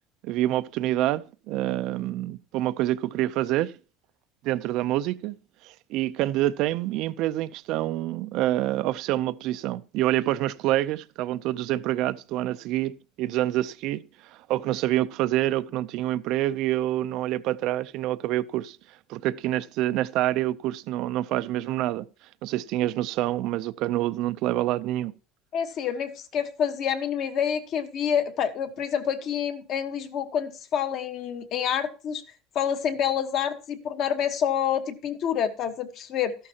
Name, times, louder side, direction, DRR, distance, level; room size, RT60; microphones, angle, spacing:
voice 1, 0.2-3.8 4.4-5.4 5.6-14.0 14.5-18.8 19.1-22.1 22.4-25.1, right 14 dB, 50° right, 0.5 m, -27 dB
voice 2, 25.5-32.2 32.5-36.4, left 8 dB, 40° left, 1.2 m, -27 dB
13.5 x 11.0 x 2.9 m
cardioid pair, 160°, 0 cm